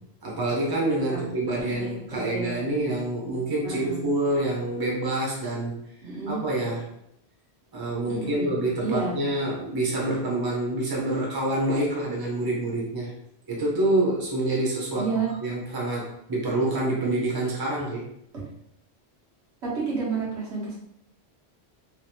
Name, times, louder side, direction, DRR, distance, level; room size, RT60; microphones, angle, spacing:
voice 1, 0.2-5.8 6.3-6.9 7.7-13.1 13.5-15.1 15.4-18.1, right 2 dB, 20° right, -4 dB, 0.8 m, -27 dB
voice 2, 1.1-2.6 3.6-4.1 6.0-6.4 8.1-8.5 8.8-9.2 14.9-15.3 19.9-20.8, right 4 dB, 80° right, -7 dB, 1.6 m, -31 dB
3.3 x 2.6 x 2.8 m, 0.75 s
omnidirectional pair, 1.1 m